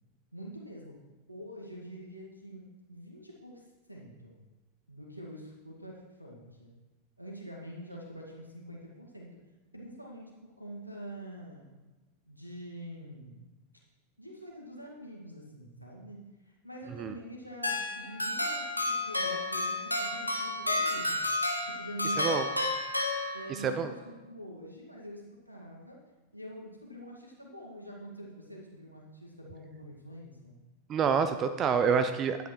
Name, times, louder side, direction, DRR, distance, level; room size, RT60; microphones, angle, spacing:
voice 1, 0.3-1.0 1.3-4.4 4.9-6.7 7.2-9.3 9.7-11.7 12.3-13.5 14.2-21.2 21.6-22.7 23.3-26.0 26.3-30.6, right 1 dB, 90° right, -2 dB, 2.0 m, -45 dB
sound 1, 17.6-23.8, left 2 dB, 85° left, 1.3 m, -31 dB
voice 2, 22.2-22.5 23.6-23.9 30.9-32.4, right 6 dB, 30° right, 9 dB, 0.6 m, -27 dB
10.5 x 8.7 x 4.5 m, 1.1 s
figure-of-eight pair, 90°, 0 cm